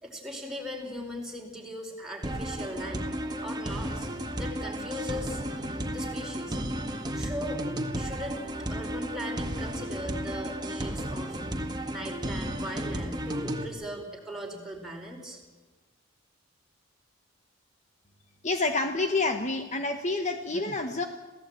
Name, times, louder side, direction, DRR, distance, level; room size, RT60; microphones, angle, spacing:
voice 1, 0.0-3.0 3.4-5.5 5.9-6.6 7.1-7.6 7.9-8.4 8.7-11.4 11.9-15.4, equal, ahead, 0 dB, 4.7 m, -39 dB
sound 1, 2.2-13.7, equal, 20° right, 1.9 m, -33 dB
voice 2, 18.4-21.0, left 3 dB, 35° left, 6 dB, 1.3 m, -28 dB
27.5 x 16.5 x 9.0 m, 1.2 s
head